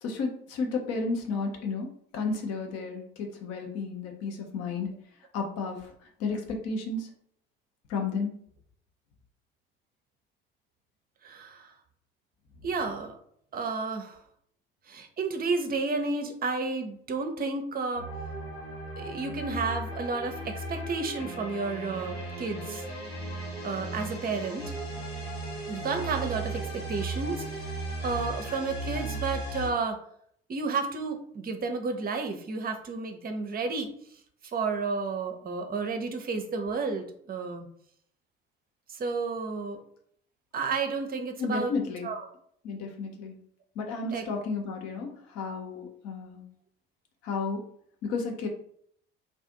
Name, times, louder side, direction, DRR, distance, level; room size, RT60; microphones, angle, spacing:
voice 1, 0.0-4.9 5.3-5.9 6.2-7.1 7.9-8.3 41.4-42.1 42.6-43.4 43.7-46.5 47.2-47.6 48.0-48.5, left 4 dB, 55° left, 3 dB, 0.8 m, -32 dB
voice 2, 11.2-11.7 12.6-13.2 13.5-14.2 14.9-18.1 19.0-22.8 23.6-24.7 25.7-27.7 28.0-30.0 30.5-33.9 34.5-37.7 38.9-39.8 40.5-41.7 42.0-42.2 44.1-44.2, right 4 dB, 30° right, 6 dB, 0.6 m, -31 dB
sound 1, 17.9-29.7, right 1 dB, 85° left, 1.2 m, -36 dB
2.5 x 2.4 x 3.7 m, 0.65 s
figure-of-eight pair, 55°, 31 cm